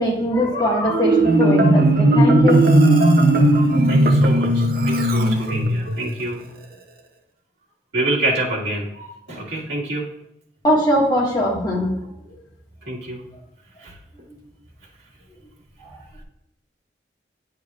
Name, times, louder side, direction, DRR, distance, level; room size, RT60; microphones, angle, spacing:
voice 1, 0.0-2.6 10.6-12.0 15.8-15.9, equal, 25° left, -5 dB, 1.8 m, -20 dB
Marimba xylophone, 0.9-6.0, right 1 dB, 55° right, 0.8 m, -16 dB
voice 2, 3.9-6.4 7.9-10.1 12.9-13.2 13.8-13.9, right 2 dB, 80° right, -5 dB, 2.0 m, -27 dB
9.3 x 6.7 x 2.5 m, 0.78 s
head